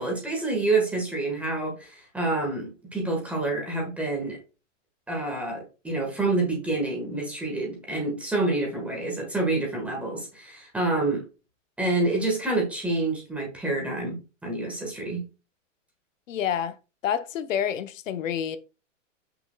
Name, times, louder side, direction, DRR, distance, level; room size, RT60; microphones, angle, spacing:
voice 1, 0.0-4.4 5.1-11.2 11.8-15.2, right 2 dB, 5° right, 1.4 m, -28 dB
voice 2, 16.3-16.7 17.0-18.6, left 9 dB, 85° left, 0.9 m, -28 dB
7.6 x 6.0 x 2.2 m
supercardioid pair, 170°, 38 cm